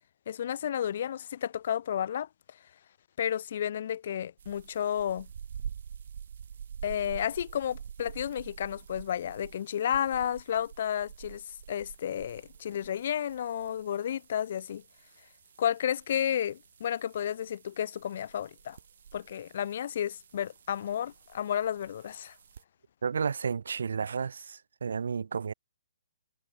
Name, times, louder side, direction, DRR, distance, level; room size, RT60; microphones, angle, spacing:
voice 1, 0.3-2.6 3.2-5.3 6.8-11.4 11.7-14.8 15.6-18.8 19.1-22.4, left 9 dB, 45° left, 0.6 m, -32 dB
sound 1, 4.4-22.6, right 8 dB, 55° right, 1.6 m, -48 dB
voice 2, 23.0-25.5, right 6 dB, 80° right, 0.6 m, -32 dB
hypercardioid pair, 175°, 0 cm